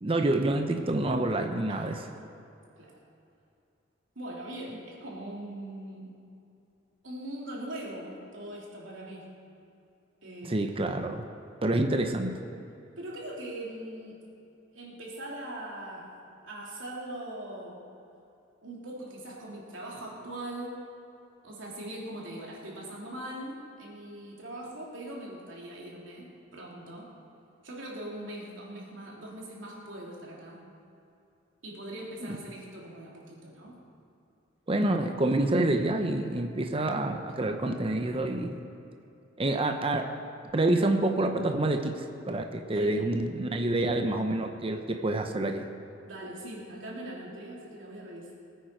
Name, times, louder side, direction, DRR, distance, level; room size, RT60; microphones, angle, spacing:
voice 1, 0.0-2.0 10.4-11.2 11.6-12.3 32.3-32.4 34.7-38.6 39.4-40.2 40.5-45.6, right 2 dB, 30° right, 5 dB, 0.8 m, -27 dB
voice 2, 4.1-6.2 7.0-9.3 10.2-10.7 13.0-14.2 14.7-16.1 16.4-17.8 18.6-20.9 21.4-27.1 27.6-30.6 31.6-33.8 42.7-43.0 46.0-48.3, right 1 dB, 75° right, -3 dB, 3.2 m, -41 dB
20.0 x 9.3 x 4.6 m, 2.7 s
head